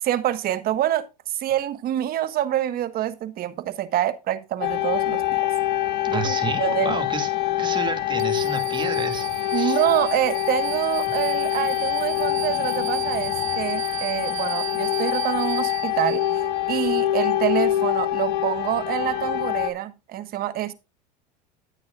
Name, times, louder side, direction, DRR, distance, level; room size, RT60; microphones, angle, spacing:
voice 1, 0.0-5.5 6.1-7.0 9.5-20.7, right 12 dB, 45° right, 1.4 m, -26 dB
sound 1, 4.6-19.7, left 14 dB, 55° left, 1.4 m, -25 dB
voice 2, 6.1-7.3 7.6-9.8, right 4 dB, 20° right, 2.3 m, -30 dB
sound 2, 8.2-16.7, right 20 dB, 70° right, 0.8 m, -37 dB
13.5 x 8.6 x 2.4 m
hypercardioid pair, 100°, 21 cm